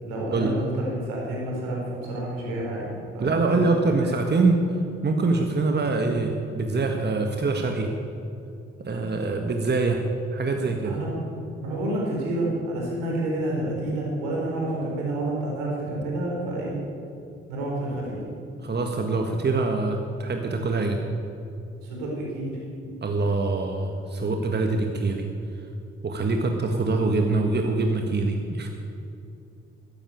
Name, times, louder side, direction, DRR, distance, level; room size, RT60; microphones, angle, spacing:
voice 1, 0.0-4.1 10.5-11.1 11.6-16.8 17.5-18.2 21.8-22.6, right 1 dB, 75° right, -3 dB, 4.5 m, -29 dB
voice 2, 3.2-7.9 8.8-10.0 10.3-11.0 18.6-21.0 23.0-25.3 26.0-28.7, right 3 dB, 30° right, 3 dB, 1.6 m, -24 dB
13.0 x 10.5 x 8.7 m, 2.7 s
hypercardioid pair, 45°, 32 cm